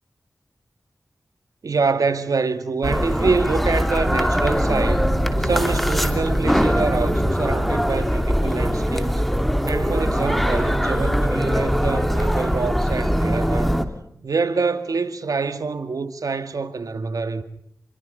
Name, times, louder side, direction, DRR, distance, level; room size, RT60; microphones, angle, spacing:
voice 1, 1.6-5.1 5.4-9.1 9.7-13.8 14.2-17.4, right 4 dB, 75° right, 2.1 m, -25 dB
sound 1, 2.8-13.8, equal, ahead, 3.0 m, -21 dB
29.5 x 22.0 x 5.4 m
cardioid pair, 45°, 6 cm